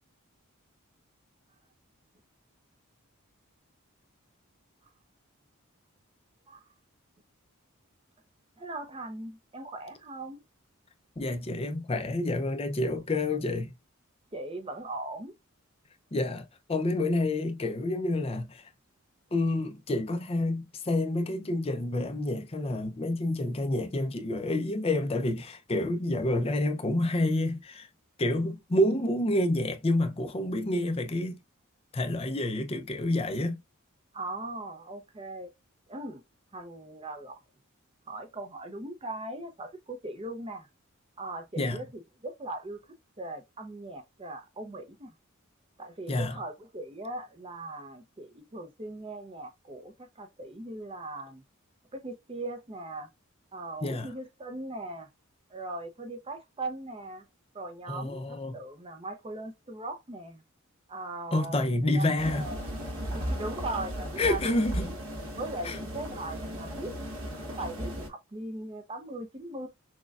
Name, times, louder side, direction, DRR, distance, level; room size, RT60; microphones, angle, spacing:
voice 1, 8.6-10.4 14.3-15.3 34.1-35.5 35.9-36.2 36.5-37.4 38.1-40.7 41.2-41.9 42.2-42.8 43.2-45.1 45.8-51.4 51.9-53.1 53.5-55.1 55.5-57.2 57.5-60.4 60.9-62.6 63.1-64.4 64.8-64.9 65.4-66.9 67.5-69.7, right 2 dB, 25° right, 0.5 m, -39 dB
voice 2, 11.2-13.8 16.1-18.7 19.3-27.9 28.2-31.4 31.9-33.6 41.6-41.8 46.1-46.4 53.8-54.1 57.9-58.6 61.3-62.5 64.2-65.0 65.6-65.8, left 1 dB, 25° left, 0.5 m, -28 dB
sound 1, 62.2-68.1, equal, 65° right, 1.2 m, -36 dB
6.2 x 2.2 x 2.3 m
head